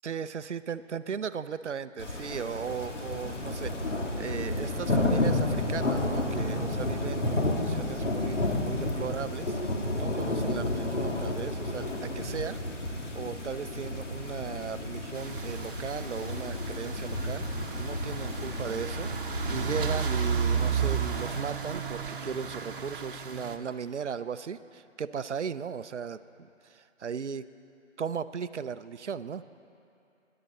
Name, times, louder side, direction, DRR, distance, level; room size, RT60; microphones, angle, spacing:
voice 1, 0.0-3.9 4.2-9.6 9.9-12.6 13.1-17.5 17.7-19.1 19.5-26.2 26.6-27.5 28.0-29.4, right 7 dB, 65° right, 13 dB, 0.7 m, -37 dB
sound 1, 2.0-21.4, left 2 dB, 70° left, 2.1 m, -31 dB
sound 2, 15.1-23.6, right 6 dB, 45° right, 1.0 m, -33 dB
26.0 x 11.5 x 4.1 m, 2.6 s
figure-of-eight pair, 155°, 38 cm